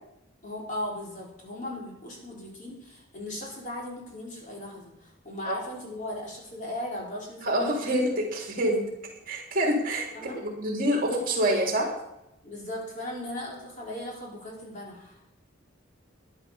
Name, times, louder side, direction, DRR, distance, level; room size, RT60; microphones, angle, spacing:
voice 1, 0.4-7.7 10.1-10.4 12.4-15.2, left 1 dB, 40° left, -3 dB, 4.2 m, -37 dB
voice 2, 7.4-8.8 9.3-10.1 10.4-11.9, equal, 45° right, 0 dB, 3.3 m, -26 dB
13.5 x 11.0 x 5.6 m, 0.87 s
head